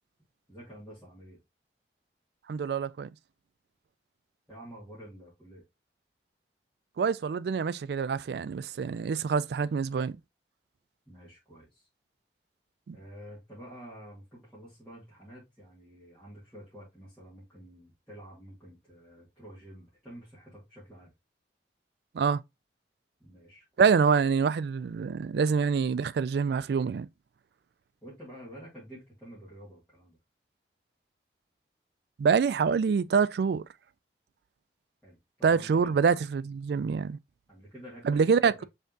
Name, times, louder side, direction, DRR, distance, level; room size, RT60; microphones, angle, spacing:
voice 1, 0.5-1.4 4.5-5.6 11.1-11.9 12.9-21.1 23.2-23.9 28.0-30.2 35.0-36.0 37.5-38.7, equal, 5° left, 1.9 m, -49 dB
voice 2, 2.5-3.1 7.0-10.1 12.9-13.0 22.1-22.4 23.8-27.1 32.2-33.6 35.4-37.2 38.1-38.5, right 6 dB, 70° right, 0.3 m, -26 dB
5.6 x 3.5 x 2.6 m
head